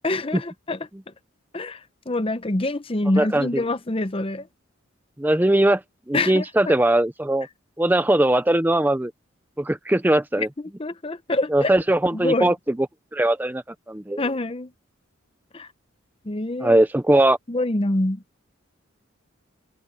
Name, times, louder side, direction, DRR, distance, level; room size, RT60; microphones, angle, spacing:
voice 1, 0.0-0.8 1.5-1.8 2.1-4.5 6.1-6.7 10.4-10.5 10.8-11.7 12.1-12.5 14.2-14.7 15.5-15.7 16.2-16.8 17.5-18.2, left 2 dB, 25° left, 0.7 m, -25 dB
voice 2, 3.2-3.6 5.2-5.8 6.1-7.5 7.8-9.1 9.6-10.5 11.5-12.8 13.1-14.2 16.6-17.4, right 1 dB, 10° right, 0.5 m, -20 dB
head